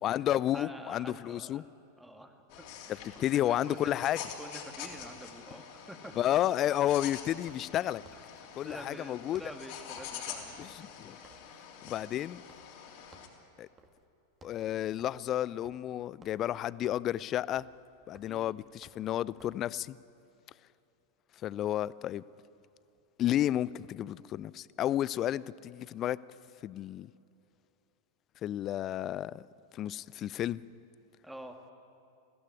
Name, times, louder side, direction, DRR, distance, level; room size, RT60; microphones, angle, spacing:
voice 1, 0.0-1.6 3.2-4.2 6.2-8.0 8.6-9.4 10.6-11.2 11.8-12.4 13.6-13.7 14.4-17.7 18.1-20.0 21.4-22.2 23.2-26.2 26.6-27.1 28.4-29.4 29.7-30.6, left 12 dB, 30° left, 21 dB, 0.4 m, -31 dB
voice 2, 0.5-1.7 2.0-4.1 4.3-6.1 8.1-8.2 8.6-10.6 18.3-18.5 31.2-31.6, equal, 5° right, 5 dB, 1.9 m, -47 dB
sound 1, 2.5-13.3, left 8 dB, 45° left, 3.2 m, -46 dB
sound 2, 6.8-9.7 10.0-10.3 10.5-12.9 13.1-13.4 13.8-14.0 14.3-19.7, right 3 dB, 20° right, 2.1 m, -60 dB
21.0 x 16.0 x 9.6 m, 2.7 s
figure-of-eight pair, 90°, 0 cm